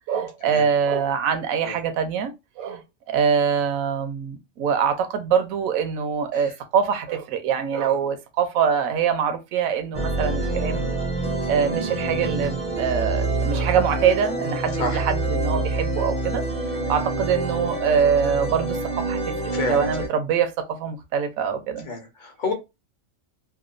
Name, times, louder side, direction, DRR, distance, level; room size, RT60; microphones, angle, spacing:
voice 1, 0.1-2.8 3.1-10.9 11.5-16.4 16.9-19.2 19.7-21.9, right 7 dB, 85° right, 1.0 m, -24 dB
sound 1, 9.9-20.1, right 2 dB, 5° left, 0.5 m, -26 dB
voice 2, 19.5-19.9 21.8-22.5, left 3 dB, 45° left, 0.7 m, -30 dB
2.9 x 2.2 x 2.4 m
omnidirectional pair, 1.4 m